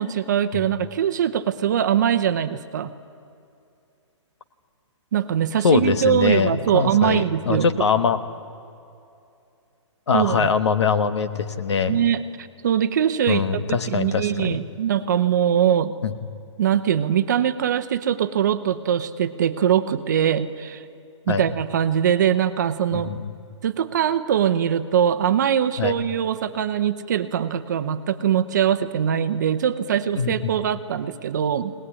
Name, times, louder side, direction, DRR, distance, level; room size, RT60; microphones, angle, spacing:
voice 1, 0.0-2.9 5.1-7.7 10.1-10.5 11.9-13.4 13.9-15.9 16.6-20.8 21.3-23.1 23.6-31.7, right 9 dB, 35° right, 11 dB, 0.9 m, -22 dB
voice 2, 5.6-8.2 10.1-12.0 13.3-14.6 16.0-16.1 21.3-21.4 22.9-23.4 25.8-25.9 30.2-30.5, left 5 dB, 65° left, 10 dB, 1.3 m, -22 dB
22.0 x 19.0 x 9.8 m, 2.6 s
hypercardioid pair, 175°, 16 cm